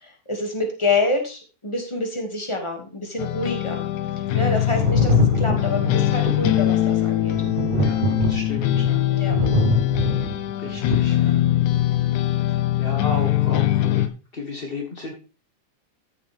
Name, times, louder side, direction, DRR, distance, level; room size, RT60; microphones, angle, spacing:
voice 1, 0.0-3.8 4.3-7.3 9.1-9.3, left 2 dB, 10° left, 2 dB, 1.8 m, -27 dB
sound 1, 3.2-14.1, left 14 dB, 85° left, 2.1 m, -22 dB
Thunder, 4.7-12.1 13.2-13.3, equal, 50° right, 0.5 m, -25 dB
voice 2, 7.7-9.1 10.6-11.4 12.5-14.1 14.3-15.1, left 3 dB, 40° left, 1 dB, 0.7 m, -34 dB
14.0 x 7.3 x 3.5 m, 0.32 s
omnidirectional pair, 3.4 m